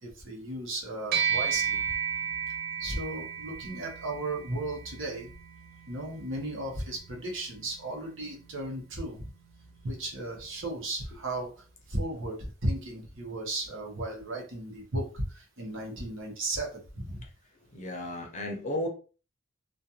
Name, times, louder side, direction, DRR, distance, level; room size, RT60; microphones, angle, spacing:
voice 1, 0.0-1.8 2.8-5.3 5.9-9.3 9.8-11.5 11.9-17.2, right 1 dB, 65° right, 0 dB, 0.8 m, -35 dB
sound 1, 1.1-10.7, right 7 dB, 50° right, 0.5 m, -35 dB
voice 2, 17.7-18.9, left 1 dB, 35° left, 1 dB, 0.7 m, -33 dB
2.4 x 2.4 x 2.7 m, 0.36 s
head